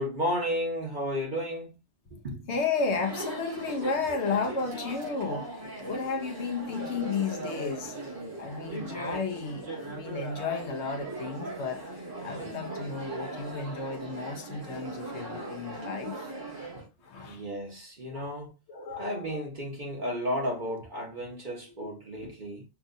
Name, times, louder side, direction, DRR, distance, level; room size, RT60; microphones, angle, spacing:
voice 1, 0.0-1.7 2.2-2.5 17.3-18.5 19.0-22.6, equal, 40° right, 1.3 m, -33 dB
voice 2, 2.5-8.0 8.4-16.3 17.0-17.5 18.1-18.4 18.7-19.5, left 4 dB, 65° left, 1.0 m, -33 dB
Chatter, 2.7-16.9, right 2 dB, 80° right, 2.4 m, -39 dB
5.8 x 2.4 x 2.7 m
omnidirectional pair, 1.3 m